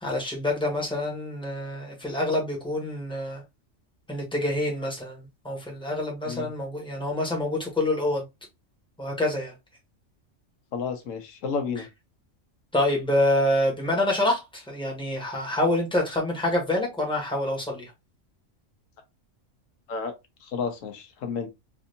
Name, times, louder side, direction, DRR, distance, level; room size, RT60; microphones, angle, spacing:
voice 1, 0.0-3.4 4.1-8.2 9.0-9.5 12.7-17.9, left 1 dB, 5° left, 1.2 m, -26 dB
voice 2, 10.7-11.9 19.9-20.1 20.4-21.5, left 5 dB, 90° left, 1.1 m, -31 dB
3.4 x 2.7 x 2.6 m
omnidirectional pair, 1.3 m